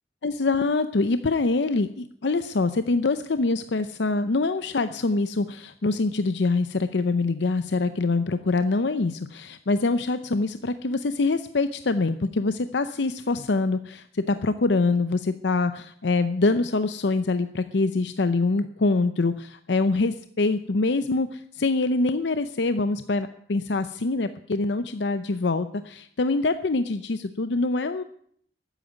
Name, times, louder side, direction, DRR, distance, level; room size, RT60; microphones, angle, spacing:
voice 1, 0.2-28.0, left 3 dB, 75° left, 11 dB, 0.6 m, -24 dB
13.0 x 9.1 x 9.3 m, 0.65 s
head